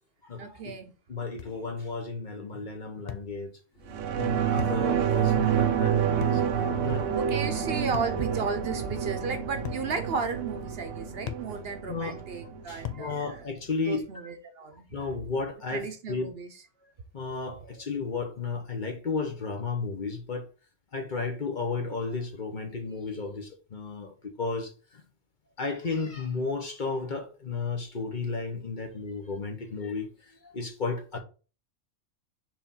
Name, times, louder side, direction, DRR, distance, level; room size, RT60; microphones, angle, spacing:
voice 1, 0.4-0.9 7.1-13.4 13.8-14.9 15.7-16.5, right 4 dB, 60° right, 0.9 m, -34 dB
voice 2, 1.1-3.5 4.1-6.4 6.8-7.0 11.9-12.1 12.7-14.0 14.9-16.3 17.1-20.4 20.9-24.1 24.4-24.7 25.6-30.1 30.5-31.2, left 4 dB, 45° left, 1.0 m, -33 dB
sound 1, 1.4-1.6 3.1-3.3 4.6-4.8 6.2-6.5 7.9-8.2 9.6-9.9 11.3-11.5 12.8-13.1, left 11 dB, 65° left, 0.4 m, -37 dB
sound 2, 3.8-13.7, equal, 85° left, 2.1 m, -39 dB
sound 3, 3.9-12.9 13.3-13.4, right 10 dB, 90° right, 1.0 m, -28 dB
4.8 x 3.6 x 5.4 m
omnidirectional pair, 1.3 m